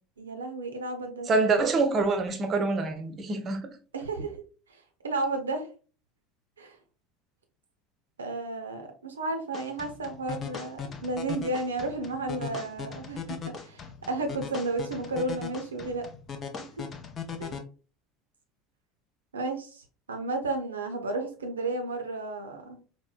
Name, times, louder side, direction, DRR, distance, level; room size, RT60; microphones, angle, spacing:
voice 1, 0.2-1.3 3.9-4.4 5.0-5.7 6.6-6.8 8.2-16.0 16.6-16.8 17.4-17.6 19.3-19.8 20.1-22.8, right 2 dB, 75° right, 0.6 m, -32 dB
voice 2, 1.3-3.7, right 3 dB, 30° right, 0.6 m, -25 dB
sound 1, 9.5-17.6, left 6 dB, 30° left, 0.5 m, -39 dB
4.2 x 2.1 x 2.3 m
figure-of-eight pair, 70°, 0 cm